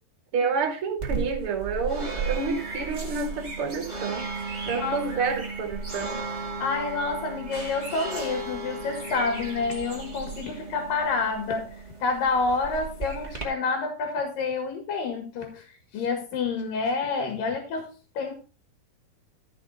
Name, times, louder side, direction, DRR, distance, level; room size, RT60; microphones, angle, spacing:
voice 1, 0.3-4.3 4.7-6.2, right 5 dB, 45° right, 1 dB, 2.1 m, -29 dB
sound 1, 1.0-13.4, right 4 dB, 25° right, 1.0 m, -35 dB
voice 2, 4.7-5.0 6.6-11.8 12.0-15.6 15.9-18.3, left 4 dB, 65° left, 4 dB, 3.3 m, -28 dB
13.5 x 6.0 x 4.1 m, 0.34 s
omnidirectional pair, 4.6 m